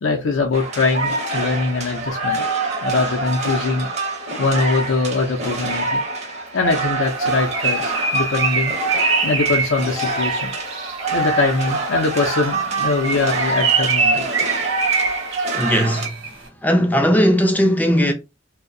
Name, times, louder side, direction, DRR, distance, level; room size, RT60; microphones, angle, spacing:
voice 1, 0.0-2.4 2.8-3.9 4.4-6.0 6.5-8.7 9.2-10.5 11.1-14.3, left 3 dB, 70° left, 0.5 m, -22 dB
sound 1, 0.5-16.1, right 3 dB, 35° right, 0.6 m, -25 dB
Bird, 7.1-11.2 12.8-16.4, right 5 dB, 75° right, 0.6 m, -24 dB
voice 2, 15.6-16.1 16.6-18.1, equal, 10° left, 0.3 m, -17 dB
2.6 x 2.0 x 2.5 m
head